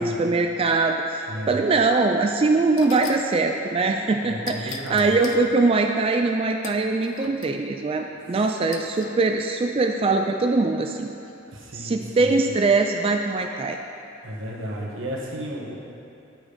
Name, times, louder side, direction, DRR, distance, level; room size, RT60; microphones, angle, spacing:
voice 1, 0.0-11.1 11.7-13.8, right 3 dB, 30° right, 4 dB, 0.3 m, -22 dB
voice 2, 1.3-1.6 4.2-5.2 11.5-12.5 14.2-15.7, equal, 85° right, -3 dB, 1.6 m, -33 dB
sound 1, 2.1-2.2 2.8-3.3 4.5-5.5 6.6-7.6 8.7-9.1, left 8 dB, 75° left, 0.5 m, -40 dB
9.0 x 6.2 x 5.1 m, 2.7 s
head